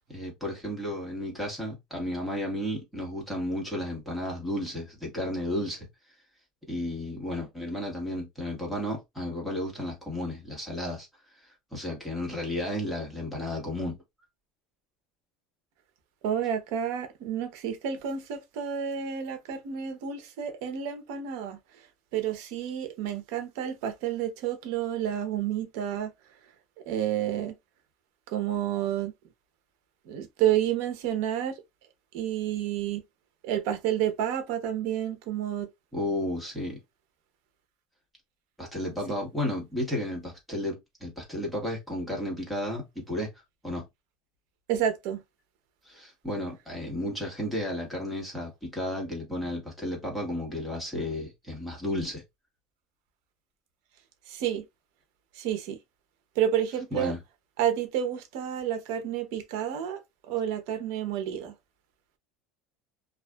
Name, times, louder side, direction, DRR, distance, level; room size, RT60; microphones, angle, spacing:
voice 1, 0.1-5.9 6.7-11.1 11.3-14.0 35.9-36.8 38.6-43.3 43.6-43.8 45.8-52.2 56.9-57.2, left 1 dB, ahead, 1.3 m, -33 dB
voice 2, 16.2-21.6 22.1-26.1 26.9-27.6 28.3-29.1 30.1-31.6 32.1-33.0 33.4-35.7 44.7-45.2 54.3-54.6 55.3-55.8 56.4-57.1 57.6-60.0 60.3-61.5, right 10 dB, 70° right, 0.7 m, -30 dB
2.5 x 2.4 x 2.2 m
supercardioid pair, 140°, 0 cm